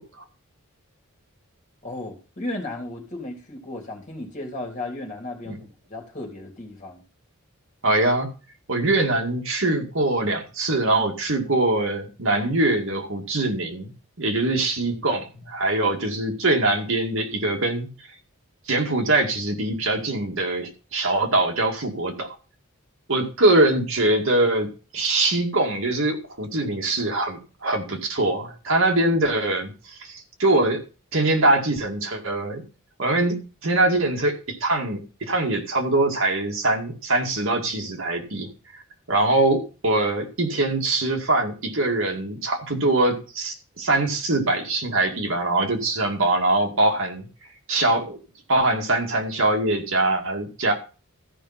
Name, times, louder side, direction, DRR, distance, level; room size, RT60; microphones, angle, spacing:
voice 1, 1.8-7.0, left 2 dB, 35° left, 1 dB, 3.3 m, -35 dB
voice 2, 7.8-8.3 8.7-13.9 14.2-17.9 18.7-22.3 23.1-24.7 24.9-29.7 30.0-30.8 31.1-32.6 33.0-33.3 33.6-38.5 39.1-47.3 47.7-48.2 48.5-50.7, right 2 dB, 65° right, 2 dB, 2.2 m, -23 dB
14.0 x 5.5 x 5.8 m, 0.34 s
head